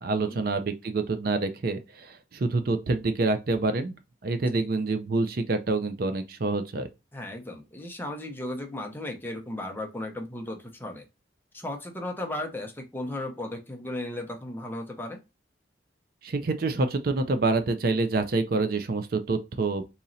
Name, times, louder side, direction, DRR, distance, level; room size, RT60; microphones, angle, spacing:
voice 1, 0.0-3.9 4.2-6.9 16.2-19.8, right 3 dB, 50° right, 0.5 m, -27 dB
voice 2, 7.1-11.1 11.5-15.2, left 1 dB, 10° left, 0.6 m, -35 dB
4.0 x 3.0 x 2.6 m
head